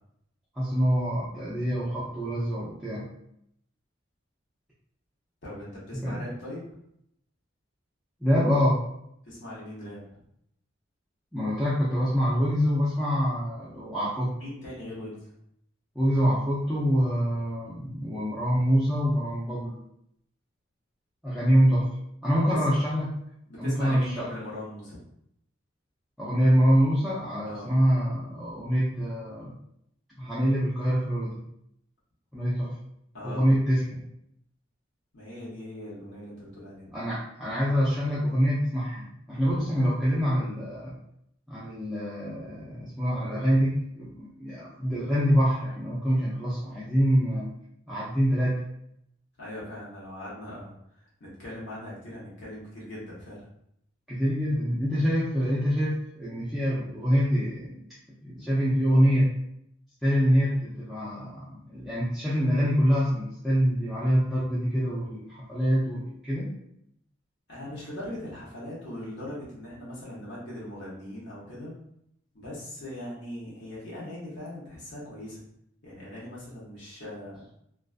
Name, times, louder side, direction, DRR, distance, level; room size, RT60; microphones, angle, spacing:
voice 1, 0.6-3.1 5.9-6.2 8.2-8.8 11.3-14.3 16.0-19.8 21.2-21.9 22.2-23.1 23.6-24.3 26.2-29.6 30.2-31.4 32.3-32.8 33.2-34.0 36.9-41.0 41.5-47.5 47.9-48.6 54.1-57.8 58.2-59.3 60.0-66.5, equal, ahead, -10 dB, 0.4 m, -25 dB
voice 2, 5.4-6.7 9.3-10.2 14.4-15.3 22.5-22.7 23.5-25.0 27.4-27.7 33.1-33.5 35.1-36.9 49.4-50.7 51.2-53.5 67.5-71.7 72.3-75.4 75.8-77.4, left 1 dB, 60° left, -7 dB, 0.9 m, -40 dB
2.4 x 2.2 x 2.4 m, 0.74 s
head